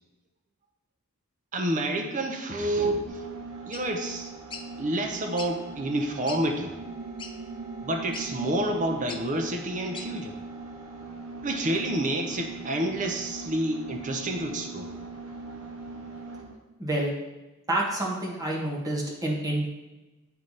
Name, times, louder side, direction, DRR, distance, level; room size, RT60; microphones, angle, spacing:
voice 1, 1.5-3.3 3.7-4.3 4.8-6.8 7.8-10.4 11.4-14.9, right 1 dB, 35° right, 3 dB, 0.7 m, -29 dB
sound 1, 3.1-16.6, right 3 dB, 65° right, 1.1 m, -40 dB
sound 2, 3.7-3.9 4.5-4.7 5.4-5.5 6.0-6.1 6.3-6.4 7.2-7.3 8.1-8.3 9.1-9.2 9.9-10.1, left 5 dB, 20° left, 0.4 m, -39 dB
voice 2, 16.8-17.1 17.7-19.7, right 1 dB, 15° right, -3 dB, 1.3 m, -28 dB
9.0 x 3.3 x 4.0 m, 1.1 s
head